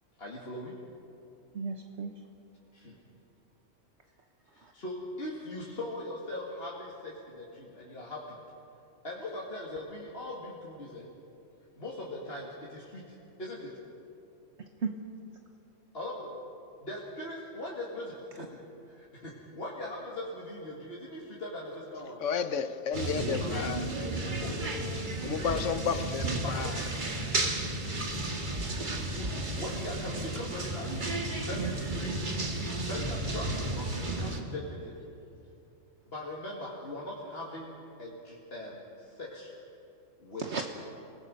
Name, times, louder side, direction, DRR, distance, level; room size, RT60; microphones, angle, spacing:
voice 1, 0.2-0.7 2.7-3.0 4.5-8.4 9.0-11.1 11.8-13.7 15.9-16.3 16.8-18.5 18.9-22.2 23.4-23.5 24.0-24.6 26.4-26.9 29.1-31.0 31.4-32.5 32.8-34.9 36.1-39.5 40.2-40.4, left 1 dB, 50° left, -5 dB, 2.4 m, -40 dB
voice 2, 1.5-2.1 4.6-4.7 14.6-14.9 26.2-26.4 31.6-31.7 40.4-40.6, right 5 dB, 60° right, 4 dB, 1.3 m, -35 dB
voice 3, 22.2-23.9 25.2-26.8, left 6 dB, 70° left, 11 dB, 1.2 m, -32 dB
sound 1, 22.9-34.4, right 2 dB, 40° right, 1.7 m, -33 dB
27.5 x 18.5 x 5.3 m, 2.7 s
omnidirectional pair, 1.3 m